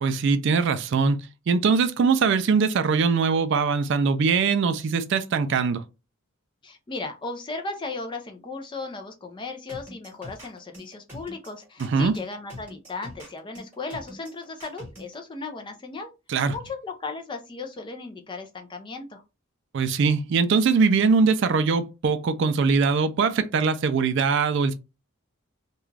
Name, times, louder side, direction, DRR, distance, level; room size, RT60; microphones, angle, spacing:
voice 1, 0.0-1.2 1.5-5.8 11.8-12.1 16.3-16.6 19.7-24.7, right 5 dB, 55° right, 0.3 m, -22 dB
voice 2, 6.6-16.1 16.5-19.2, left 3 dB, 20° left, 0.4 m, -36 dB
sound 1, 9.7-15.1, left 1 dB, 10° right, 1.2 m, -42 dB
2.4 x 2.2 x 3.1 m
head